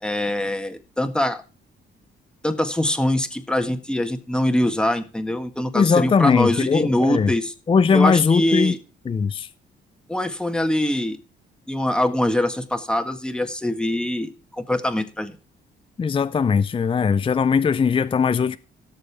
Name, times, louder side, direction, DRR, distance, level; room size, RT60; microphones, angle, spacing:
voice 1, 0.0-1.4 2.4-7.5 7.9-8.8 10.1-11.2 11.7-15.4, left 1 dB, 5° left, 1.6 m, -23 dB
voice 2, 5.7-7.3 7.7-8.7 9.1-9.5 16.0-18.6, left 5 dB, 25° left, 0.5 m, -19 dB
17.0 x 6.8 x 3.5 m
cardioid pair, 90°, 20 cm